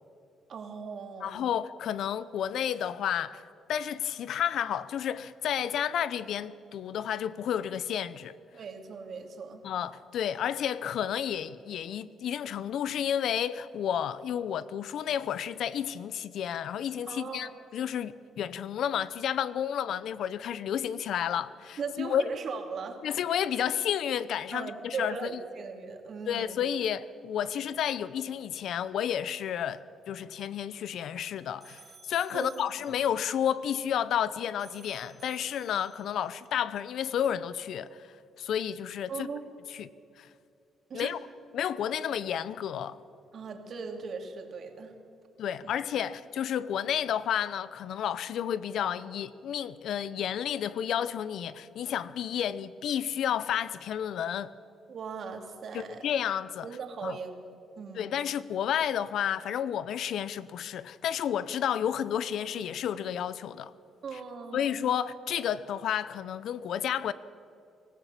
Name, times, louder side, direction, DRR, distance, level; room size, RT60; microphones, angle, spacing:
voice 1, 0.5-1.4 8.5-9.6 17.1-17.6 21.8-23.0 24.5-26.6 32.3-32.7 39.1-39.4 40.9-41.1 43.3-44.9 45.6-45.7 54.9-56.1 56.6-58.2 64.0-64.7, right 5 dB, 55° right, 3.0 m, -39 dB
voice 2, 1.2-3.4 3.7-8.3 9.6-22.2 23.0-25.3 26.3-38.1 38.4-39.3 39.7-39.9 40.2-40.3 40.9-41.2 41.5-43.0 45.4-54.5 55.7-56.7 57.0-57.2 57.9-63.7 64.1-64.2 64.5-67.1, left 9 dB, 75° left, 0.8 m, -31 dB
sound 1, 31.2-34.3 34.6-36.5, right 4 dB, 35° right, 3.2 m, -56 dB
24.0 x 15.0 x 8.4 m
cardioid pair, 90°, 0 cm